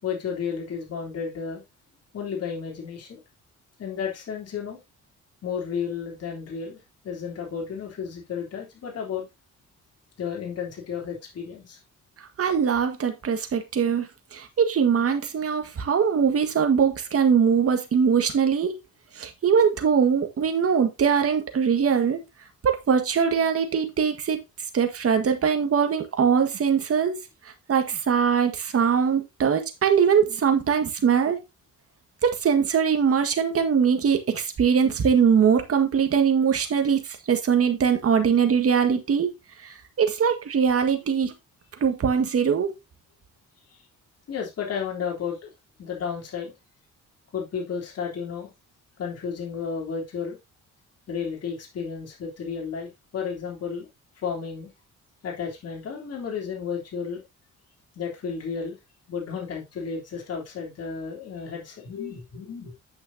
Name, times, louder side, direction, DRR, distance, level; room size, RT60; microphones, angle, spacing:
voice 1, 0.0-1.6 2.1-3.2 3.8-4.8 5.4-9.3 10.2-11.8 44.3-45.5 45.8-46.5 47.3-48.5 49.0-50.4 51.1-53.9 54.2-54.7 55.2-57.2 58.0-58.8 59.1-62.7, left 6 dB, 55° left, 3.5 m, -32 dB
voice 2, 12.4-18.8 19.2-22.2 22.6-24.4 24.7-27.2 27.7-31.4 32.2-37.0 37.3-39.3 40.0-41.3 41.8-42.7, right 7 dB, 50° right, 1.7 m, -22 dB
8.6 x 6.4 x 2.8 m
cardioid pair, 90°, 30 cm